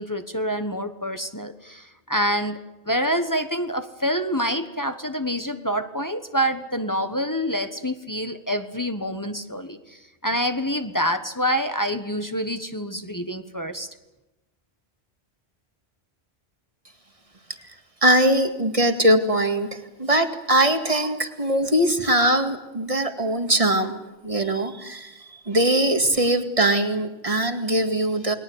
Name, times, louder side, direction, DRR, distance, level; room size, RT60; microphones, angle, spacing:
voice 1, 0.0-2.6 2.8-13.9, equal, 20° left, 8 dB, 1.3 m, -27 dB
voice 2, 18.0-24.0 24.2-25.2 25.5-28.3, right 1 dB, 30° right, 6 dB, 2.2 m, -21 dB
29.0 x 21.5 x 8.1 m, 1.0 s
omnidirectional pair, 1.1 m